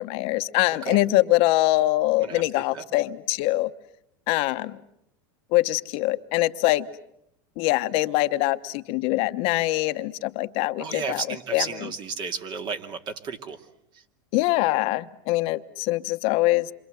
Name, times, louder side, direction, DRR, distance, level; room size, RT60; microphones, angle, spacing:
voice 1, 0.0-3.7 4.3-4.8 5.5-6.9 7.6-11.9 14.3-16.7, left 18 dB, 55° left, 9 dB, 1.1 m, -23 dB
voice 2, 10.8-13.6, right 5 dB, 40° right, 7 dB, 2.4 m, -32 dB
28.0 x 25.0 x 7.9 m, 0.78 s
supercardioid pair, 130°, 11 cm